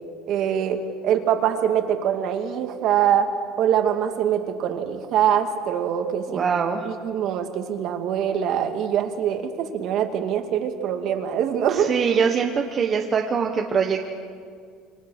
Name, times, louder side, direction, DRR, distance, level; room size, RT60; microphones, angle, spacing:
voice 1, 0.3-3.3 3.6-6.5 6.8-11.9, right 9 dB, 45° right, 5 dB, 2.3 m, -23 dB
voice 2, 6.3-6.9 11.7-14.1, right 6 dB, 25° right, 2 dB, 1.2 m, -23 dB
28.5 x 25.0 x 6.5 m, 2.1 s
cardioid pair, 165°, 0 cm